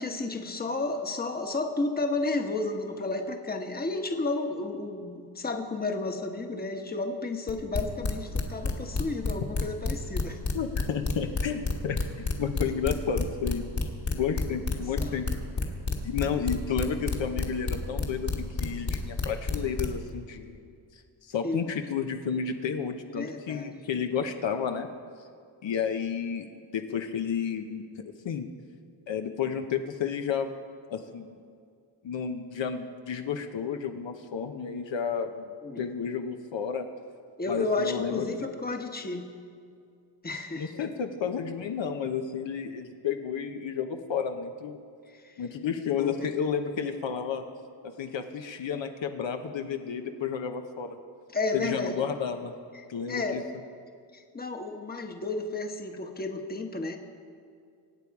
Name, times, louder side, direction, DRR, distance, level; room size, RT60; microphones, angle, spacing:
voice 1, 0.0-10.4 15.0-15.2 21.4-21.7 23.1-23.8 35.6-35.8 37.4-39.2 40.2-40.9 45.1-45.4 46.0-46.3 51.3-52.0 52.7-53.4 54.1-57.0, left 3 dB, 20° left, 4 dB, 1.2 m, -32 dB
sound 1, 7.5-20.1, left 3 dB, 35° left, 1.8 m, -28 dB
voice 2, 10.5-13.6 14.1-15.3 16.0-18.3 18.6-20.6 21.3-24.9 25.6-26.5 26.7-27.8 28.2-28.5 29.1-30.5 30.9-31.4 32.0-35.5 35.8-36.9 37.5-38.2 40.6-44.8 45.4-47.4 47.8-51.0 51.5-52.5 52.9-53.4, left 7 dB, 65° left, 5 dB, 1.0 m, -31 dB
25.0 x 8.6 x 4.7 m, 2.3 s
cardioid pair, 120°, 49 cm